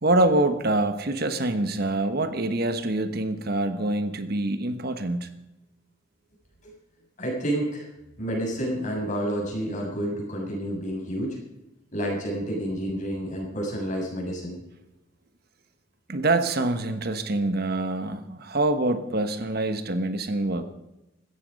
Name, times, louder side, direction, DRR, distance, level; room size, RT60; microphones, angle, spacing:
voice 1, 0.0-5.3 16.1-20.6, right 2 dB, 50° right, 9 dB, 1.2 m, -25 dB
voice 2, 7.2-7.9 8.2-11.4 11.9-14.6, right 1 dB, 40° left, -1 dB, 7.1 m, -29 dB
17.0 x 14.0 x 5.3 m, 0.95 s
head